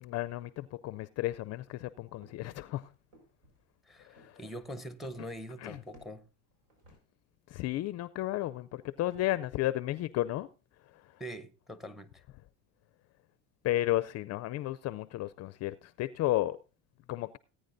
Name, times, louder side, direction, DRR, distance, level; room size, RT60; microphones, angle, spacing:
voice 1, 0.0-2.9 4.1-4.4 5.6-5.8 7.5-10.5 13.6-16.6 17.1-17.4, left 15 dB, 45° left, 0.4 m, -33 dB
sound 1, 1.4-7.0, right 1 dB, 75° right, 5.3 m, -62 dB
voice 2, 3.9-6.2 11.2-12.2, equal, ahead, 0.8 m, -43 dB
18.0 x 9.3 x 2.6 m
supercardioid pair, 105°, 38 cm